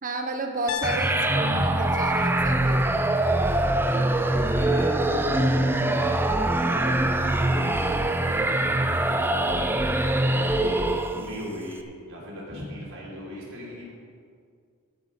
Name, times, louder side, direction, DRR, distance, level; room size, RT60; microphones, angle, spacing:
voice 1, 0.0-3.6, right 2 dB, 40° right, 5 dB, 0.9 m, -32 dB
Piano, 0.7-4.7, left 9 dB, 70° left, 0.6 m, -39 dB
sound 1, 0.8-11.4, right 1 dB, 10° right, 0.5 m, -23 dB
voice 2, 3.4-6.1 6.5-10.0 10.3-10.8 11.1-13.9, equal, 60° right, -5 dB, 3.5 m, -39 dB
16.5 x 5.9 x 5.3 m, 2.1 s
head